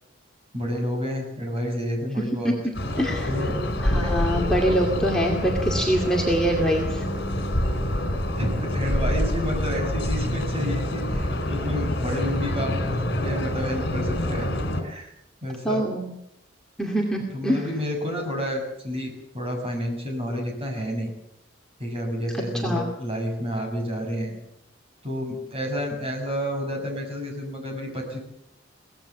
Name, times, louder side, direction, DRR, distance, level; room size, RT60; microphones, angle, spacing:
voice 1, 0.5-2.5 3.3-3.6 3.9-4.3 8.4-14.5 14.8-15.1 15.4-15.8 17.3-21.1 21.8-24.3 25.0-28.2, equal, 30° right, 2 dB, 6.8 m, -30 dB
sound 1, 2.7-14.8, left 1 dB, 55° left, 4.6 m, -26 dB
voice 2, 3.0-3.5 3.8-7.1 15.6-16.1 16.8-17.7 22.3-22.9, equal, 5° left, -2 dB, 2.3 m, -24 dB
23.0 x 18.0 x 7.3 m, 0.79 s
head